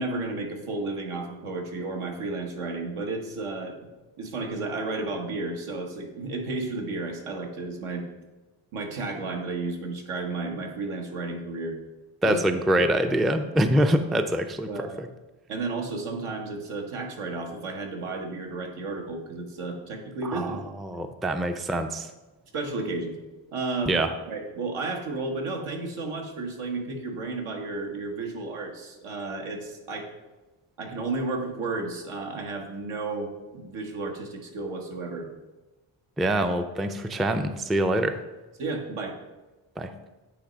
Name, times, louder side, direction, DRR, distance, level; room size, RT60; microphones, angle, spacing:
voice 1, 0.0-3.7 4.2-8.1 8.7-11.8 12.2-12.4 12.8-12.9 14.7-15.0 15.5-20.7 22.5-23.2 23.5-24.0 24.3-30.1 30.8-35.3 38.6-39.2, right 3 dB, 80° right, 2 dB, 1.3 m, -32 dB
voice 2, 12.2-15.1 20.2-22.1 23.9-24.1 36.2-38.2 39.8-39.9, right 1 dB, ahead, 8 dB, 0.3 m, -25 dB
8.5 x 3.2 x 5.0 m, 1.1 s
cardioid pair, 60°, 50 cm